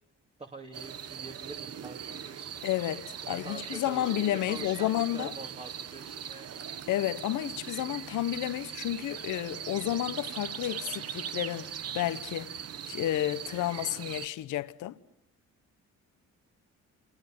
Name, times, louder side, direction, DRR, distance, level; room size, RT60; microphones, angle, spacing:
voice 1, 0.4-2.5 3.2-6.5, right 2 dB, 20° right, 2.8 m, -45 dB
sound 1, 0.7-14.3, right 8 dB, 55° right, 1.1 m, -40 dB
voice 2, 2.6-5.3 6.9-12.5 12.9-15.0, left 13 dB, 80° left, 1.1 m, -31 dB
28.0 x 25.0 x 7.8 m
cardioid pair, 90°, 30 cm